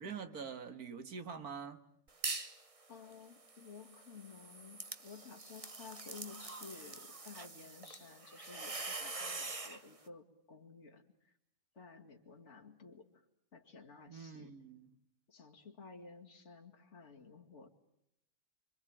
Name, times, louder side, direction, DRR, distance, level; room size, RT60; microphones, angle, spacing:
voice 1, 0.0-1.8 14.1-15.0, right 6 dB, 90° right, 2.2 m, -45 dB
sound 1, 2.1-2.6 3.0-9.8, right 3 dB, 25° right, 1.2 m, -44 dB
voice 2, 2.9-11.4 11.7-13.2 13.5-14.5 15.3-17.7, left 5 dB, 50° left, 2.4 m, -54 dB
26.0 x 25.5 x 8.8 m
omnidirectional pair, 1.5 m